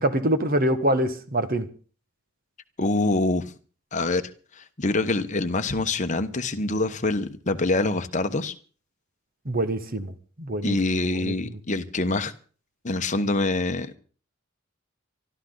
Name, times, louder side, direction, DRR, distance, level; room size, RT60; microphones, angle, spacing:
voice 1, 0.0-1.7 9.4-10.8 11.2-11.3, right 1 dB, 40° right, 10 dB, 1.5 m, -25 dB
voice 2, 2.8-3.5 3.9-4.3 4.6-8.5 10.6-12.3 12.8-14.0, left 2 dB, 35° left, 8 dB, 1.1 m, -25 dB
24.0 x 13.0 x 3.9 m, 0.40 s
head